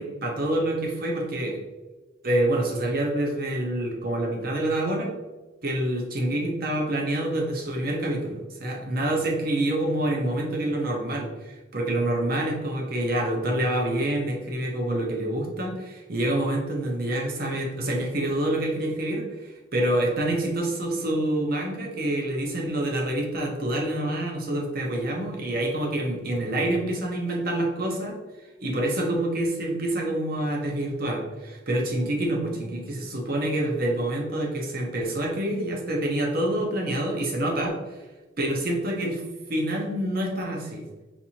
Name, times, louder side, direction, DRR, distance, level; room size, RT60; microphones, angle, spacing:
voice 1, 0.0-1.6 2.2-5.1 5.6-38.0 38.4-39.2 39.5-40.8, right 1 dB, 45° right, 0 dB, 0.7 m, -27 dB
4.2 x 2.6 x 2.8 m, 1.2 s
head